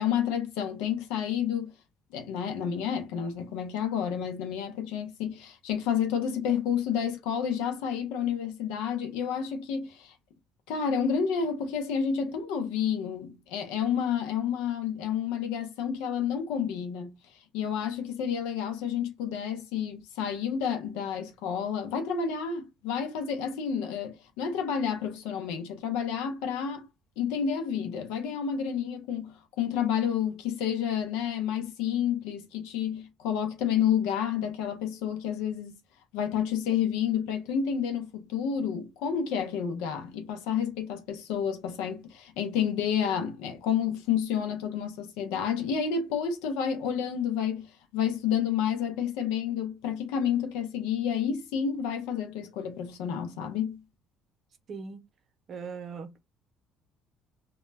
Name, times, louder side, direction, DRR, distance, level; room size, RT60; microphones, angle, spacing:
voice 1, 0.0-1.7 2.1-10.1 10.7-17.2 17.5-26.9 27.2-35.7 36.1-47.7 47.9-53.8, left 8 dB, 90° left, 0.6 m, -30 dB
voice 2, 54.7-55.0 55.5-56.2, right 5 dB, 50° right, 0.6 m, -39 dB
2.1 x 2.1 x 3.2 m
cardioid pair, 95°, 0 cm